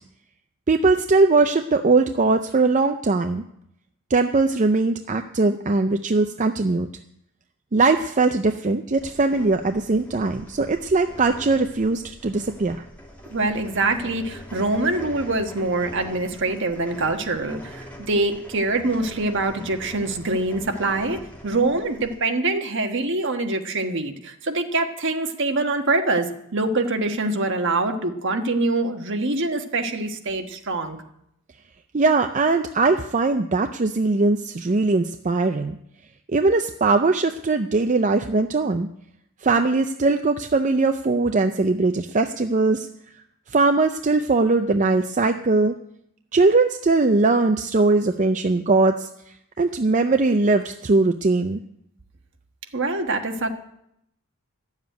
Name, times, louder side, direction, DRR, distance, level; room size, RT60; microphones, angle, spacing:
voice 1, 0.7-3.4 4.1-6.9 7.7-12.8 31.9-35.8 36.3-38.9 39.4-42.9 43.5-45.7 46.3-49.1 49.6-51.6, right 3 dB, 35° right, 6 dB, 0.5 m, -20 dB
sound 1, 9.0-22.2, equal, 10° left, 2.8 m, -43 dB
voice 2, 13.3-31.0 52.7-53.5, right 2 dB, 55° right, 4 dB, 1.4 m, -24 dB
13.0 x 7.3 x 9.3 m, 0.76 s
head